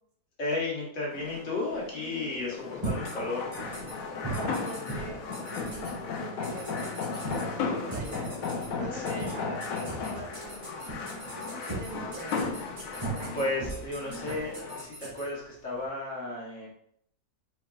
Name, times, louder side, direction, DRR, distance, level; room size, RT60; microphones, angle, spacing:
voice 1, 0.4-3.5 8.9-9.4 12.9-16.7, left 2 dB, 60° left, -4 dB, 1.6 m, -34 dB
sound 1, 1.1-14.8, left 5 dB, 75° left, 1.1 m, -36 dB
sound 2, 2.4-15.8, right 2 dB, 20° right, 1.4 m, -40 dB
sound 3, 2.8-3.1 3.5-3.9 4.3-4.9 5.3-5.9 6.4-7.4 7.9-8.7 9.0-9.3 9.6-15.2, right 1 dB, 40° right, 1.4 m, -45 dB
voice 2, 4.2-10.9 11.3-12.4, right 2 dB, 70° right, -1 dB, 1.4 m, -43 dB
4.7 x 4.4 x 2.4 m, 0.69 s
omnidirectional pair, 1.5 m